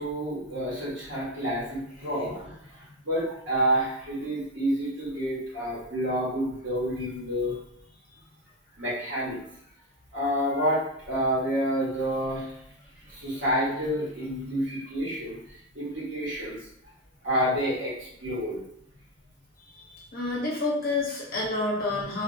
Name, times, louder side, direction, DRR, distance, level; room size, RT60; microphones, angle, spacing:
voice 1, 0.0-2.6 3.0-7.6 8.8-9.4 10.1-12.5 13.1-15.4 15.7-16.5 17.2-18.6, equal, 70° right, -8 dB, 1.5 m, -28 dB
voice 2, 19.9-22.2, left 2 dB, 50° left, -4 dB, 0.8 m, -28 dB
2.7 x 2.0 x 2.7 m, 0.71 s
head